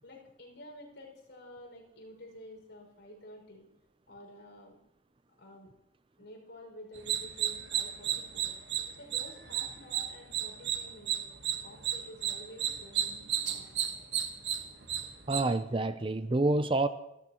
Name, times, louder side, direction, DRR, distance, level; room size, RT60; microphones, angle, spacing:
voice 1, 0.0-3.7 4.1-4.8 5.4-5.7 6.2-8.5 8.9-11.2 11.6-13.8, left 1 dB, 65° left, 1 dB, 5.7 m, -50 dB
sound 1, 6.9-15.4, right 9 dB, 60° right, 1.4 m, -33 dB
voice 2, 15.3-16.9, right 2 dB, 25° right, 12 dB, 0.5 m, -28 dB
26.5 x 13.5 x 3.0 m, 0.82 s
head